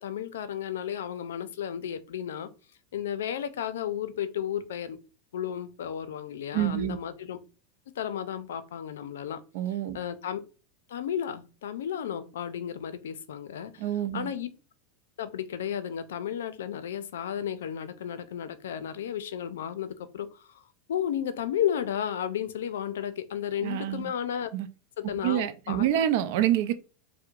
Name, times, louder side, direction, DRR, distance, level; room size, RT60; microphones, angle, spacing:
voice 1, 0.0-2.5 2.9-5.0 5.3-7.4 8.0-9.4 9.9-10.4 10.9-14.5 15.2-20.6 20.9-24.5 25.0-25.8, left 9 dB, 85° left, 0.4 m, -33 dB
voice 2, 6.5-7.0 9.5-10.0 13.8-14.3 23.6-24.1 24.5-24.7 25.2-26.7, right 12 dB, 65° right, 0.5 m, -27 dB
4.5 x 2.1 x 2.4 m
hypercardioid pair, 120°, 0 cm